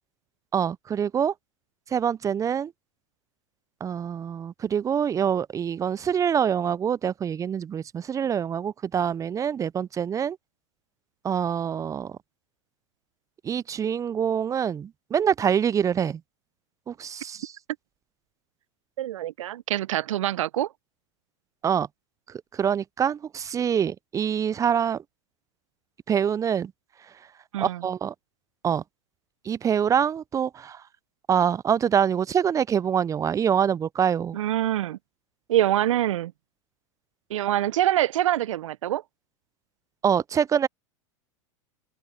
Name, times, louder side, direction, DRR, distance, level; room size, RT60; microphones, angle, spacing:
voice 1, 0.5-1.3 1.9-2.7 3.8-10.4 11.2-12.2 13.4-16.2 16.9-17.5 21.6-21.9 22.5-25.0 26.1-26.7 27.6-28.1 28.6-28.8 29.5-30.8 31.3-34.4 40.0-40.7, right 8 dB, 20° right, 0.4 m, -25 dB
voice 2, 19.0-20.7 27.5-27.9 34.3-35.0 35.5-36.3 37.3-39.0, right 13 dB, 70° right, 0.9 m, -25 dB
open air
hypercardioid pair, 95°, 17 cm